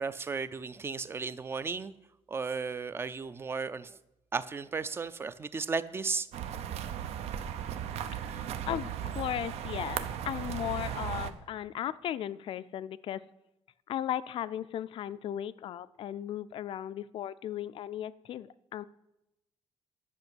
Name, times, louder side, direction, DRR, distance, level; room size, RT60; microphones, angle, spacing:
voice 1, 0.0-1.9 2.3-4.0 4.3-6.3 8.2-8.4, right 4 dB, 25° right, 14 dB, 0.4 m, -35 dB
sound 1, 6.3-11.3, right 9 dB, 85° right, 0.8 m, -36 dB
voice 2, 8.2-13.2 13.9-18.8, left 11 dB, 55° left, 15 dB, 0.4 m, -36 dB
10.5 x 5.9 x 8.9 m, 0.89 s
cardioid pair, 175°, 11 cm